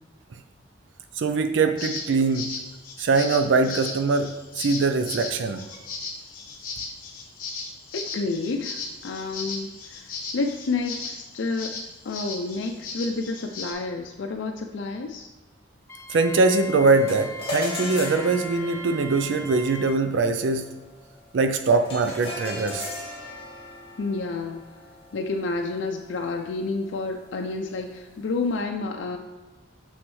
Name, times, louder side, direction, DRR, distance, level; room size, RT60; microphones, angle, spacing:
voice 1, 1.2-2.4 3.0-5.6 16.1-20.7 21.3-22.9, right 3 dB, 90° right, 7 dB, 0.4 m, -22 dB
sound 1, 1.8-13.7, left 4 dB, 50° left, 1.1 m, -36 dB
voice 2, 7.9-11.7 12.0-15.3 24.0-24.6 25.1-29.2, left 3 dB, 85° left, 3 dB, 0.4 m, -30 dB
Wind instrument woodwind instrument, 15.9-20.0, left 1 dB, 15° left, 0.3 m, -40 dB
sound 2, 16.9-26.4, left 1 dB, 30° left, 1.6 m, -38 dB
6.3 x 6.1 x 3.1 m, 1.2 s
head